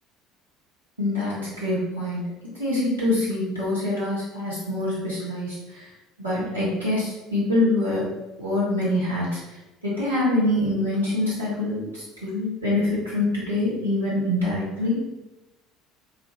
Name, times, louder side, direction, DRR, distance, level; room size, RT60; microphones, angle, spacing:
voice 1, 1.0-2.2 2.6-5.8 6.2-8.1 8.4-9.3 9.8-15.0, left 1 dB, 90° right, -10 dB, 1.2 m, -25 dB
3.1 x 2.6 x 3.1 m, 1.0 s
figure-of-eight pair, 60°, 0 cm